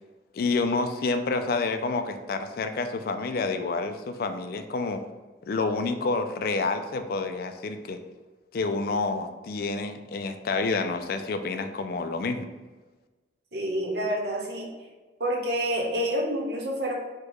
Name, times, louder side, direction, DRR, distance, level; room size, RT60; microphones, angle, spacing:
voice 1, 0.3-5.0 5.4-8.0 8.5-12.5, left 3 dB, 50° left, 7 dB, 0.3 m, -28 dB
voice 2, 13.5-14.7 15.2-16.9, equal, 55° right, -2 dB, 1.0 m, -28 dB
4.4 x 2.3 x 4.6 m, 1.3 s
head